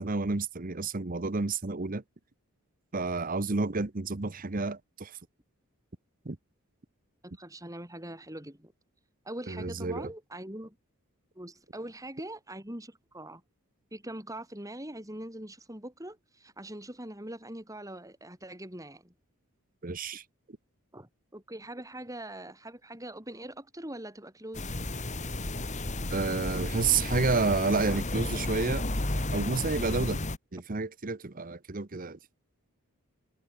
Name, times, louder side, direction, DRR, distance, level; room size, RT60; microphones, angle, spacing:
voice 1, 0.0-2.0 2.9-5.2 6.2-6.4 9.5-10.1 19.8-20.2 26.1-28.9 29.3-30.2 30.5-32.2, right 3 dB, 40° right, 1.0 m, -30 dB
voice 2, 7.2-8.7 9.3-10.8 11.4-13.4 13.9-19.1 20.9-24.7 27.9-28.0, right 1 dB, 15° right, 7.0 m, -42 dB
sound 1, 24.5-30.4, left 2 dB, 35° left, 2.4 m, -33 dB
head